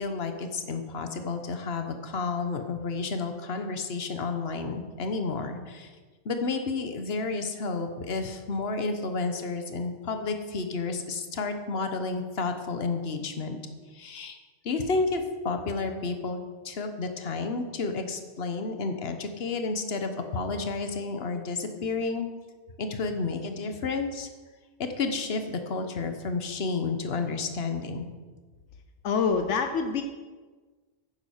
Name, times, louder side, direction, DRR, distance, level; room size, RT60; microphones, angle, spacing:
voice 1, 0.0-5.9 6.2-13.6 13.9-14.4 14.6-16.4 16.6-22.3 22.8-24.3 24.8-28.1, left 4 dB, 60° left, 7 dB, 1.3 m, -31 dB
voice 2, 29.0-30.0, left 5 dB, 80° left, 6 dB, 1.1 m, -25 dB
9.7 x 9.5 x 6.5 m, 1.4 s
omnidirectional pair, 1.2 m